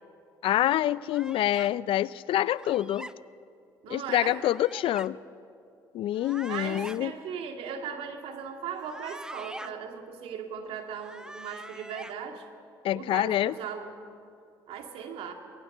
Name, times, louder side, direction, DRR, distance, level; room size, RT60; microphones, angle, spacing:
voice 1, 0.4-3.1 3.9-5.2 5.9-7.1 12.8-13.5, left 13 dB, 65° left, 20 dB, 0.5 m, -26 dB
sound 1, 1.1-1.7 2.6-3.1 4.2-5.1 6.1-7.0 8.7-9.7 10.8-12.1, right 1 dB, 5° right, 0.7 m, -43 dB
voice 2, 3.8-4.4 6.5-12.4 12.9-13.9 14.7-15.3, right 7 dB, 70° right, 5 dB, 2.2 m, -38 dB
23.5 x 20.0 x 6.7 m, 2.5 s
hypercardioid pair, 60°, 10 cm